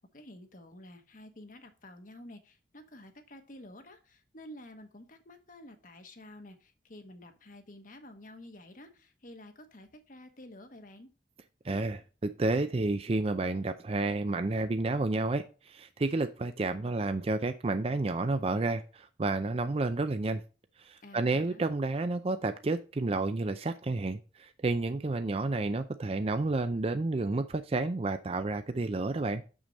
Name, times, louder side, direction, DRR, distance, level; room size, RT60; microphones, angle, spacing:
voice 1, 0.1-11.1 21.0-21.6, left 1 dB, 50° left, 7 dB, 1.2 m, -50 dB
voice 2, 11.6-20.4 20.8-29.4, right 2 dB, 35° right, 9 dB, 0.4 m, -30 dB
6.7 x 6.2 x 4.0 m, 0.35 s
head